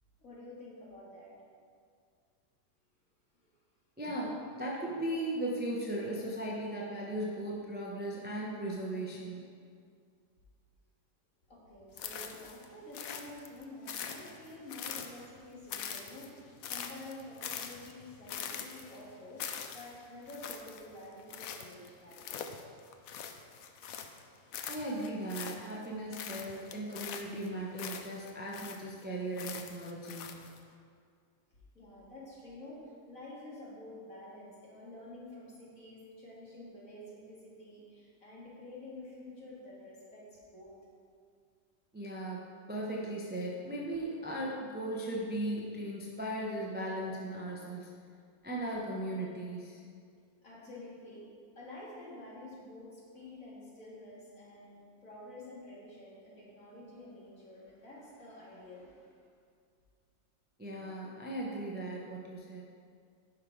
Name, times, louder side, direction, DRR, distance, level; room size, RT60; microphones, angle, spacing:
voice 1, 0.2-1.3 11.5-19.5 19.7-22.4 31.7-40.8 50.4-51.2 51.6-59.2, left 1 dB, 45° left, -6 dB, 2.4 m, -49 dB
voice 2, 4.0-9.4 24.7-30.4 41.9-42.4 42.7-47.9 48.4-49.8 60.6-62.6, right 1 dB, 10° right, -4 dB, 0.5 m, -37 dB
sound 1, 12.0-12.7 12.9-15.4 15.7-24.2 24.5-25.9 26.1-29.0 29.4-30.6, left 7 dB, 70° left, 0.8 m, -43 dB
10.5 x 5.7 x 4.7 m, 2.2 s
omnidirectional pair, 2.1 m